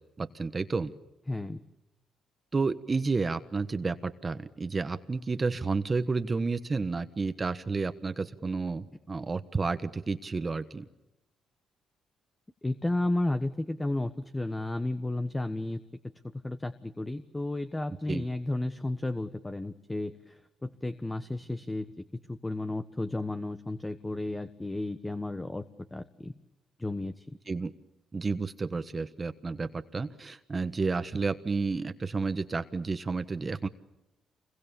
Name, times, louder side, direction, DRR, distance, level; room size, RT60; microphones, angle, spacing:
voice 1, 0.2-0.9 2.5-10.8 18.1-18.2 27.5-27.7 28.1-33.7, right 4 dB, 30° right, 11 dB, 1.3 m, -31 dB
voice 2, 1.3-1.6 12.6-15.8 16.4-26.4 26.8-27.3, left 2 dB, 15° left, 10 dB, 1.4 m, -33 dB
28.5 x 22.5 x 7.1 m, 0.94 s
cardioid pair, 90°, 0 cm